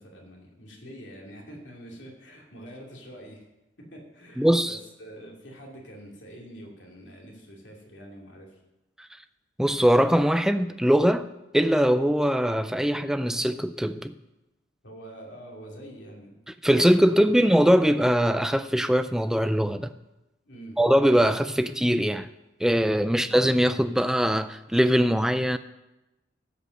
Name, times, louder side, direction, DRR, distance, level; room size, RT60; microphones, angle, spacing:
voice 1, 0.0-3.4 3.8-8.6 14.8-16.4 20.5-20.8, right 1 dB, 65° left, 2.7 m, -45 dB
voice 2, 4.4-4.8 9.6-14.2 16.6-19.9 20.8-22.3 22.6-25.6, equal, 5° right, 0.3 m, -22 dB
15.5 x 5.3 x 6.5 m
head